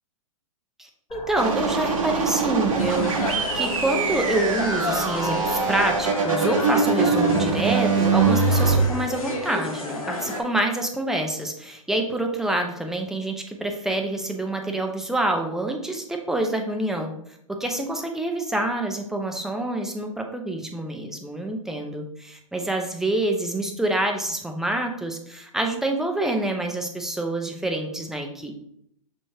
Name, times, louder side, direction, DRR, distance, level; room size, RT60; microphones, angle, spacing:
voice 1, 0.8-17.1 17.5-28.5, right 1 dB, ahead, 3 dB, 0.6 m, -27 dB
sound 1, 1.1-6.1, left 3 dB, 30° left, 1.3 m, -40 dB
sound 2, 1.4-8.8, right 5 dB, 70° right, 1.1 m, -23 dB
sound 3, 2.8-10.4, left 2 dB, 90° left, 1.0 m, -30 dB
6.2 x 3.1 x 2.8 m, 0.72 s
hypercardioid pair, 110°, 17 cm